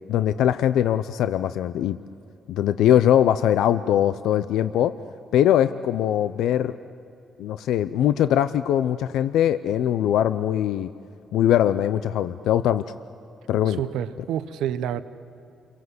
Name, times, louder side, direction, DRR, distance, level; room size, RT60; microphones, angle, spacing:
voice 1, 0.1-2.0 2.5-4.9 5.3-6.7 7.4-10.9 11.3-12.8 13.5-13.8, left 11 dB, 85° left, 12 dB, 0.5 m, -21 dB
voice 2, 13.7-15.0, right 10 dB, 85° right, 12 dB, 0.8 m, -28 dB
29.0 x 23.0 x 7.9 m, 2.6 s
cardioid pair, 90°, 0 cm